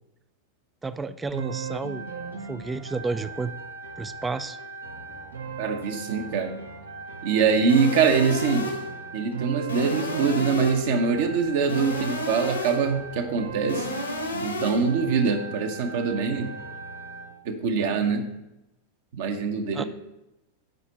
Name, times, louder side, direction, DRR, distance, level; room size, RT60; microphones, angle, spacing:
voice 1, 0.8-2.0 2.5-3.5 4.0-4.6 19.7-19.8, right 3 dB, 10° right, 13 dB, 0.4 m, -31 dB
sound 1, 1.3-17.3, right 4 dB, 75° right, 1.1 m, -38 dB
voice 2, 5.6-6.6 7.2-8.7 9.1-13.9 14.4-16.5 17.4-18.3 19.2-19.8, right 5 dB, 55° right, 5 dB, 1.0 m, -24 dB
sound 2, 7.7-9.0 9.7-11.0 11.7-13.0 13.7-15.0, left 1 dB, 80° left, 1.3 m, -32 dB
8.1 x 5.1 x 5.8 m, 0.92 s
figure-of-eight pair, 90°, 0 cm